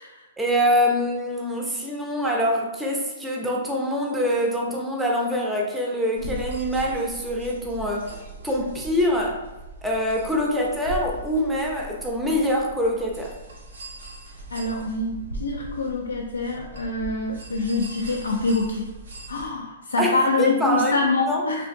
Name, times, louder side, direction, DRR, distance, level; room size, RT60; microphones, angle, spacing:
voice 1, 0.4-8.1 8.4-9.4 9.8-13.3 20.0-20.9 21.3-21.4, equal, 5° right, -1 dB, 0.5 m, -24 dB
sound 1, 6.2-19.5, right 2 dB, 80° right, 0.8 m, -39 dB
voice 2, 14.5-18.9 19.3-21.7, left 3 dB, 85° left, 1 dB, 0.4 m, -25 dB
3.3 x 2.5 x 2.5 m, 1.1 s
hypercardioid pair, 120°, 0 cm